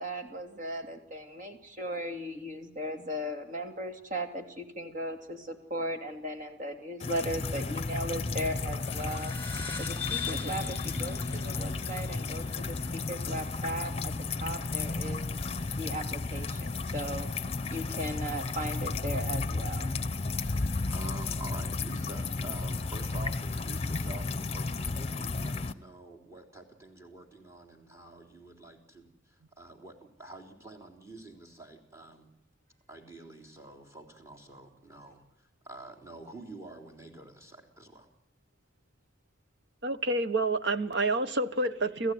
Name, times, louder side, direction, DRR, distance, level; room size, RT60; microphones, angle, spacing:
voice 1, 0.0-9.3 9.8-14.1 14.4-15.2 15.8-17.3 17.7-20.0, equal, 40° right, 5 dB, 2.9 m, -37 dB
sound 1, 7.0-25.7, left 3 dB, 30° left, 0.8 m, -33 dB
sound 2, 8.8-13.7, left 7 dB, 10° left, 5.1 m, -41 dB
voice 2, 20.0-32.3 32.9-35.2 35.6-38.1, right 2 dB, 15° right, 4 dB, 3.6 m, -48 dB
voice 3, 39.8-42.1, right 2 dB, 60° right, 11 dB, 1.2 m, -28 dB
29.0 x 15.0 x 9.5 m, 0.87 s
head